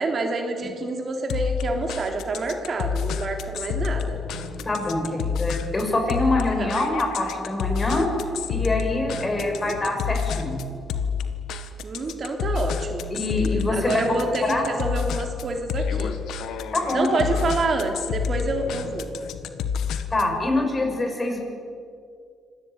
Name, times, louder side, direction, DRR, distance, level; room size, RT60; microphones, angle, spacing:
voice 1, 0.0-4.2 6.6-6.7 9.2-9.8 11.8-13.0 13.7-16.2 16.9-19.1, right 3 dB, 45° right, 4 dB, 3.2 m, -27 dB
sound 1, 1.3-20.4, left 6 dB, 80° left, 1.7 m, -29 dB
voice 2, 4.6-8.1 8.5-10.6 13.1-14.6 16.7-17.1 20.1-21.4, left 2 dB, 25° left, 2 dB, 7.1 m, -25 dB
25.0 x 18.5 x 9.5 m, 2.3 s
cardioid pair, 90°, 0 cm